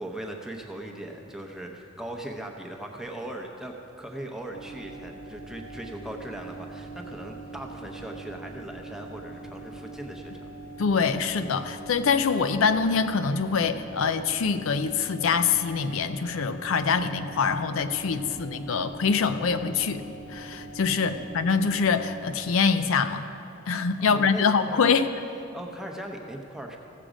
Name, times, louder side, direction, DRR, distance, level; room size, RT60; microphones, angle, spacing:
voice 1, 0.0-10.5 18.1-18.5 21.0-21.4 24.0-24.9 25.5-26.8, right 1 dB, ahead, 1 dB, 0.8 m, -39 dB
sound 1, 4.5-22.3, right 2 dB, 90° left, 1.5 m, -43 dB
voice 2, 10.8-20.0 20.3-23.2 23.7-25.1, left 5 dB, 70° left, 10 dB, 0.5 m, -24 dB
15.0 x 7.5 x 5.0 m, 2.7 s
head